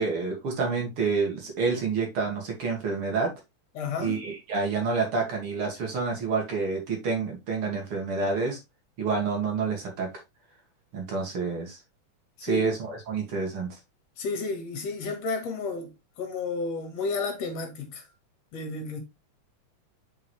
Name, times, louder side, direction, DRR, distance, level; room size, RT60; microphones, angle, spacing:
voice 1, 0.0-3.3 4.0-8.6 9.0-10.1 10.9-11.8 12.4-13.8, right 4 dB, 50° right, 2.9 m, -28 dB
voice 2, 3.7-4.2 12.4-12.7 14.2-18.0 18.5-19.0, left 4 dB, 60° left, 2.9 m, -32 dB
6.7 x 5.6 x 3.2 m
omnidirectional pair, 3.4 m